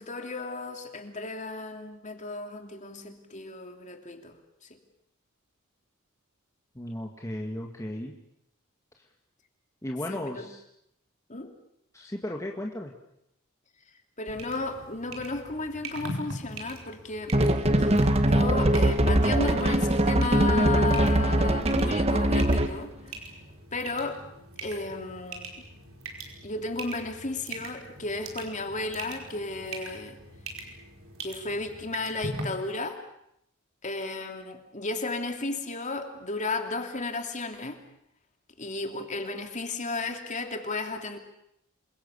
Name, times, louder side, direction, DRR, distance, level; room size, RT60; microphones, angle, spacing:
voice 1, 0.0-4.4 10.1-10.5 11.3-11.5 14.2-17.4 17.8-22.9 23.7-24.2 24.6-25.5 26.4-30.2 31.2-33.0 33.8-37.8 38.6-41.2, left 3 dB, 35° left, 5 dB, 2.8 m, -34 dB
voice 2, 6.8-8.1 9.8-10.6 11.9-12.9, left 1 dB, 15° left, 1 dB, 1.8 m, -35 dB
sound 1, 14.3-32.4, right 2 dB, 75° right, 5.2 m, -42 dB
sound 2, 17.3-22.8, right 1 dB, 30° right, 1.4 m, -22 dB
28.0 x 22.5 x 7.1 m, 0.77 s
head